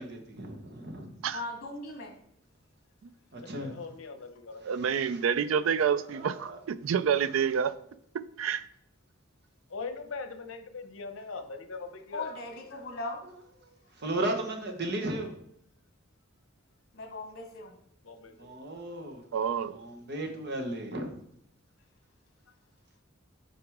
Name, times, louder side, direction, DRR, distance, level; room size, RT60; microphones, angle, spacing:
voice 1, 0.0-1.2 3.3-3.8 4.6-5.2 5.8-6.6 7.1-7.2 14.0-15.3 18.4-19.2 19.7-21.1, right 1 dB, 55° right, 1.2 m, -35 dB
voice 2, 1.3-2.2 12.1-13.2 16.9-17.8, left 2 dB, 50° left, 1.4 m, -38 dB
voice 3, 3.4-5.0 9.7-12.3 18.0-18.5, left 4 dB, 70° left, 0.8 m, -41 dB
voice 4, 4.6-7.7 8.4-8.7 19.3-19.8, right 7 dB, 70° right, 0.4 m, -28 dB
7.7 x 4.9 x 3.6 m
head